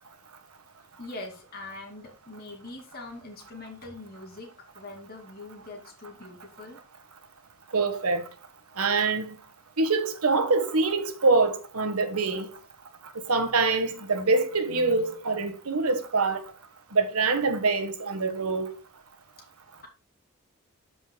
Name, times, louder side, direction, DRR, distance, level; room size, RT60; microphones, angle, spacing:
voice 1, 1.0-6.8 19.8-19.9, left 2 dB, 45° left, 2.6 m, -43 dB
voice 2, 7.7-8.2 8.8-9.3 9.8-12.5 13.3-16.4 16.9-18.7, right 3 dB, 90° right, 1.4 m, -25 dB
13.0 x 5.3 x 2.3 m
head